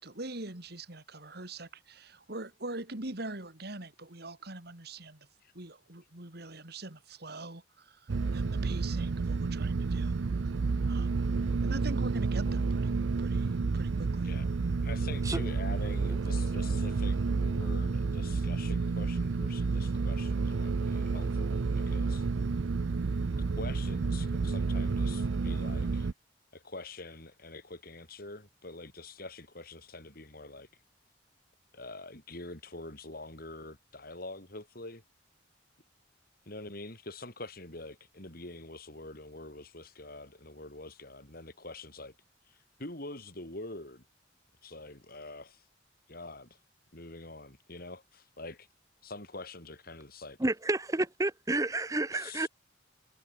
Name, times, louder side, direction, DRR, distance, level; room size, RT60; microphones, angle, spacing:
voice 1, 0.0-5.3 5.5-10.1 10.9-11.2 11.6-12.9 13.2-14.3, right 2 dB, 60° right, 3.2 m, -43 dB
sound 1, 8.1-26.1, right 4 dB, 80° right, 0.6 m, -30 dB
voice 2, 14.2-14.6 14.8-22.3 23.6-26.1 26.5-30.7 31.7-35.0 36.5-42.1 42.5-44.1 44.6-45.7 46.1-46.6 46.9-48.7 49.0-50.4 52.1-52.5, left 2 dB, 50° left, 6.2 m, -45 dB
voice 3, 50.4-52.5, right 2 dB, 20° right, 0.8 m, -30 dB
head